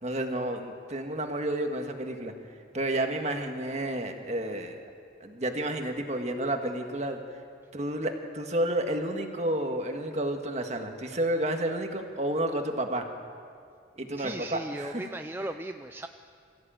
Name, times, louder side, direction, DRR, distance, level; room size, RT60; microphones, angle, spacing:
voice 1, 0.0-2.3 2.7-4.9 5.2-7.2 7.7-13.1 14.0-15.0, right 1 dB, 40° right, 4 dB, 1.6 m, -30 dB
voice 2, 14.2-16.1, right 1 dB, 10° right, 7 dB, 0.4 m, -37 dB
23.0 x 14.5 x 8.9 m, 2.3 s
head